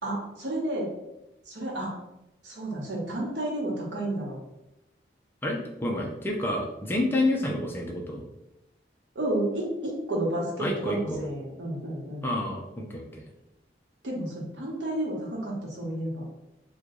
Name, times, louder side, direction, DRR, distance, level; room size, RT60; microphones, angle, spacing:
voice 1, 0.0-0.9 1.5-1.9 2.4-4.4 9.1-12.2 14.0-16.2, right 1 dB, 85° right, -2 dB, 1.0 m, -31 dB
voice 2, 5.4-8.2 10.6-11.2 12.2-13.0, left 1 dB, 10° left, -1 dB, 0.4 m, -29 dB
3.1 x 2.3 x 3.7 m, 0.93 s
head